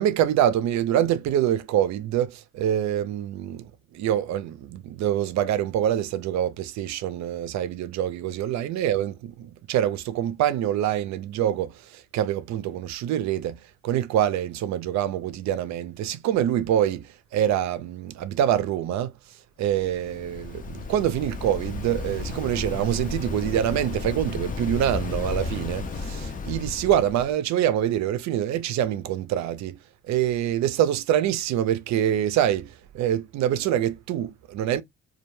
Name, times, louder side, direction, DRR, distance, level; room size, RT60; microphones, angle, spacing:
voice 1, 0.0-13.6 13.8-17.1 17.3-19.1 19.6-29.8 30.1-34.8, right 11 dB, 70° right, 0.5 m, -25 dB
Waves surf, 19.7-27.3, left 4 dB, 30° left, 0.5 m, -33 dB
2.3 x 2.1 x 3.0 m
cardioid pair, 105°, 29 cm